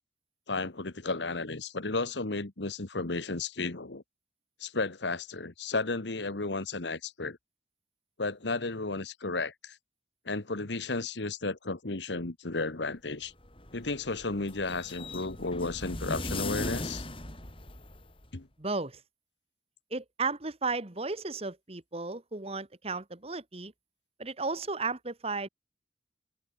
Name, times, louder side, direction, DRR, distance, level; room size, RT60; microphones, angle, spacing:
voice 1, 0.5-4.0 4.6-7.4 8.2-9.8 10.2-13.3 13.7-17.1 18.3-18.5, left 3 dB, 80° left, 1.6 m, -33 dB
sound 1, 13.2-18.3, left 2 dB, 30° left, 7.4 m, -38 dB
voice 2, 18.6-19.0 19.9-23.7 24.2-25.5, right 3 dB, 35° right, 1.6 m, -34 dB
open air
head